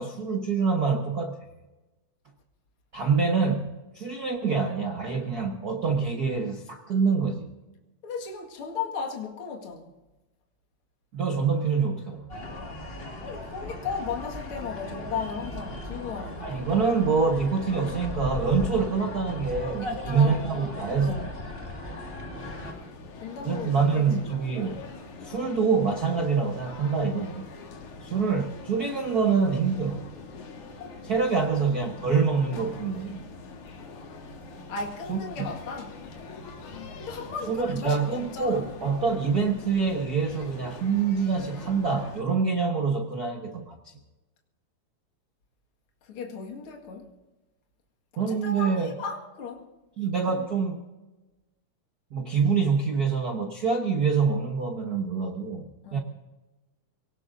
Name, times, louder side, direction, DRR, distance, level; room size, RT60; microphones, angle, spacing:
voice 1, 0.0-1.4 2.9-7.5 11.1-12.3 16.4-21.3 23.4-24.8 25.2-27.5 28.0-30.0 31.0-33.2 35.1-35.5 37.5-43.7 48.2-48.9 50.0-50.8 52.1-56.0, right 5 dB, 75° right, 0.8 m, -26 dB
voice 2, 8.0-9.9 13.2-16.7 19.8-21.6 23.2-24.1 30.8-31.0 34.7-36.0 37.0-38.7 46.0-47.1 48.2-49.7 50.3-50.4 55.8-56.0, left 5 dB, 45° left, 2.6 m, -36 dB
sound 1, 12.3-22.7, left 1 dB, 20° left, 1.9 m, -37 dB
sound 2, 22.4-42.2, left 4 dB, 70° left, 3.2 m, -43 dB
24.0 x 18.5 x 2.7 m
omnidirectional pair, 3.6 m